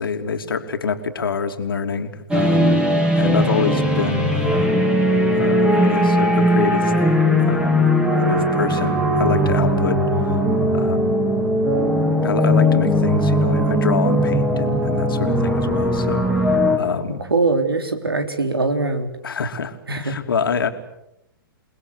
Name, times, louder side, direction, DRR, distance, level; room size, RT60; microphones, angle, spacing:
voice 1, 0.0-2.8 3.2-4.9 5.3-6.9 7.5-7.8 8.2-10.0 10.7-11.1 12.2-16.2 16.8-17.2 19.2-20.7, left 5 dB, 70° left, 6 dB, 3.1 m, -26 dB
sound 1, 2.3-16.8, equal, 10° right, 3.7 m, -18 dB
voice 2, 17.3-19.1 19.9-20.2, right 3 dB, 85° right, 7 dB, 3.7 m, -22 dB
29.0 x 20.0 x 8.2 m, 0.83 s
figure-of-eight pair, 120°, 12 cm